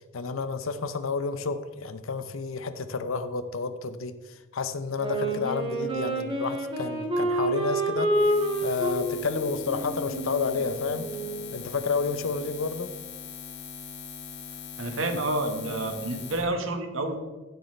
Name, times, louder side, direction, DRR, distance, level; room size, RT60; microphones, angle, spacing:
voice 1, 0.1-8.1 8.6-11.1 11.5-12.9, left 4 dB, 80° left, 10 dB, 0.7 m, -30 dB
Wind instrument woodwind instrument, 5.0-11.6, right 1 dB, 25° right, 1.8 m, -29 dB
Buzz, 8.1-16.4, left 6 dB, 55° left, 1.4 m, -41 dB
voice 2, 14.8-17.2, right 2 dB, 70° right, 5 dB, 1.5 m, -29 dB
15.5 x 8.1 x 3.3 m, 1.2 s
head